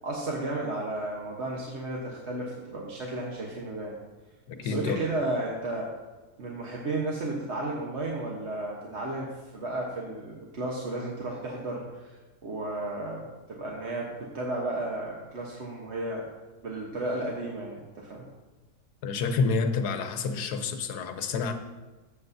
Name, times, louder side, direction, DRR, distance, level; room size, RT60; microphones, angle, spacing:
voice 1, 0.0-4.0 4.6-5.9 6.4-9.3 9.5-12.2 12.4-16.2 16.6-18.2, right 2 dB, 50° right, -2 dB, 1.3 m, -33 dB
voice 2, 4.5-5.1 19.0-21.5, left 4 dB, 80° left, 7 dB, 1.3 m, -28 dB
13.5 x 8.2 x 2.7 m, 1.2 s
omnidirectional pair, 1.7 m